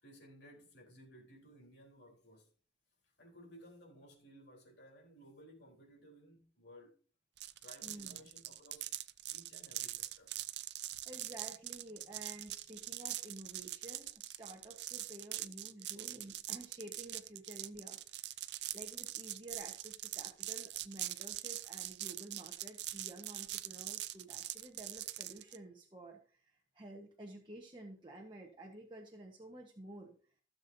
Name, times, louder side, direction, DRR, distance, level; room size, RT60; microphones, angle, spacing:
voice 1, 0.0-2.5 3.0-6.9 7.6-8.9 9.3-10.5, equal, 65° left, 3.9 m, -58 dB
sound 1, 7.4-25.6, right 14 dB, 65° right, 0.5 m, -43 dB
voice 2, 7.8-8.3 11.0-30.1, right 1 dB, 25° right, 1.3 m, -51 dB
15.5 x 7.0 x 2.8 m
head